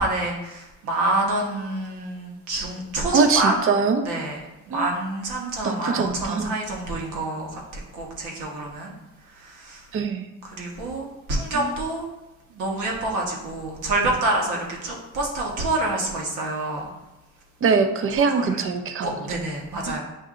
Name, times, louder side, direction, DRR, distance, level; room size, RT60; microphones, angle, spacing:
voice 1, 0.0-3.5 4.0-4.4 4.7-7.6 7.9-8.9 9.4-9.8 10.6-12.1 12.5-16.9 18.3-18.6 19.0-20.0, right 2 dB, 90° right, -1 dB, 1.1 m, -27 dB
voice 2, 3.1-4.1 4.7-4.9 5.6-6.6 9.9-10.3 11.5-11.7 17.6-19.4 19.9-20.0, right 5 dB, 45° right, 7 dB, 0.6 m, -23 dB
7.6 x 2.7 x 2.4 m, 1.0 s
cardioid pair, 90°, 30 cm